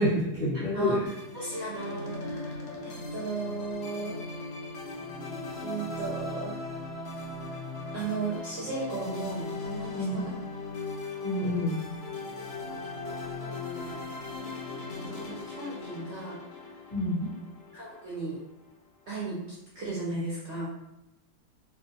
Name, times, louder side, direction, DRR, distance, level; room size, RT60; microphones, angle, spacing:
voice 1, 0.0-1.0 10.0-10.2 11.2-11.7 16.9-17.2, left 1 dB, 30° left, -10 dB, 0.6 m, -27 dB
voice 2, 0.7-4.2 5.6-6.6 7.9-10.4 12.5-12.6 13.2-14.1 14.8-16.8 17.7-18.4 19.1-20.7, right 3 dB, 65° right, -6 dB, 0.7 m, -36 dB
sound 1, 1.1-18.4, left 2 dB, 80° left, 0.5 m, -38 dB
2.5 x 2.3 x 2.6 m, 0.88 s
omnidirectional pair, 1.7 m